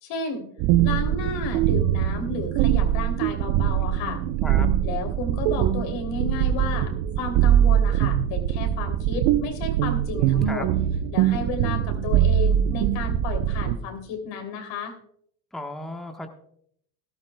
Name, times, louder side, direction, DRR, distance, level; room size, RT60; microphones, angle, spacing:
voice 1, 0.0-0.4 0.8-4.2 4.8-10.7 11.1-14.9, left 4 dB, 60° left, 4 dB, 3.2 m, -32 dB
sound 1, 0.6-13.8, right 10 dB, 60° right, 0.9 m, -22 dB
voice 2, 4.0-4.7 10.2-10.6 15.5-16.3, left 1 dB, ahead, 4 dB, 1.2 m, -36 dB
18.0 x 12.5 x 2.3 m, 0.68 s
hypercardioid pair, 90°, 49 cm